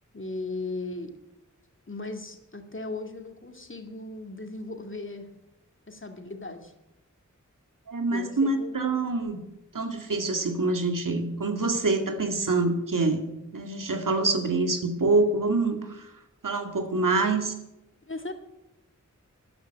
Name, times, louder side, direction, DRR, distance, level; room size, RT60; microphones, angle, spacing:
voice 1, 0.1-1.1 1.9-5.3 5.9-6.7 8.1-8.7 18.0-18.3, left 2 dB, 40° left, 5 dB, 2.4 m, -37 dB
voice 2, 7.9-9.4 9.7-13.2 13.5-16.1 16.4-17.5, right 3 dB, 90° right, 6 dB, 2.1 m, -26 dB
14.0 x 10.5 x 9.1 m, 0.93 s
wide cardioid pair, 60°, 31 cm